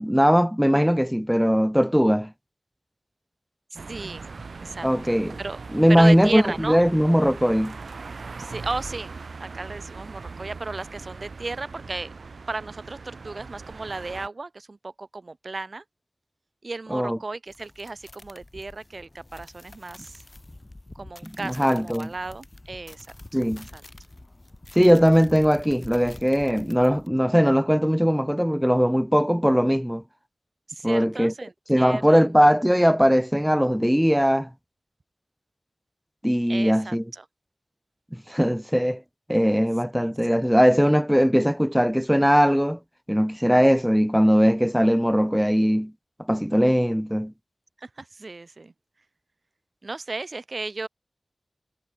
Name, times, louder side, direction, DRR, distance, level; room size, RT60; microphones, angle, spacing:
voice 1, 0.0-2.3 4.8-5.4 5.7-7.8 16.9-17.2 21.4-22.1 23.3-23.7 24.8-30.0 30.8-31.3 31.7-34.5 36.2-37.0 38.1-39.0 39.3-42.8 43.1-45.9 46.3-47.3, equal, ahead, 0.5 m, -20 dB
voice 2, 3.7-4.3 4.6-5.6 5.9-6.8 8.4-9.1 9.4-12.1 12.5-15.8 16.6-20.2 20.9-23.1 23.5-23.8 30.7-32.3 36.5-37.2 39.9-40.1 47.8-48.7 49.8-50.9, right 3 dB, 50° right, 0.6 m, -35 dB
sound 1, 3.7-14.3, right 4 dB, 75° right, 3.3 m, -40 dB
sound 2, 17.5-27.1, left 2 dB, 30° left, 5.6 m, -46 dB
wide cardioid pair, 75°, 0 cm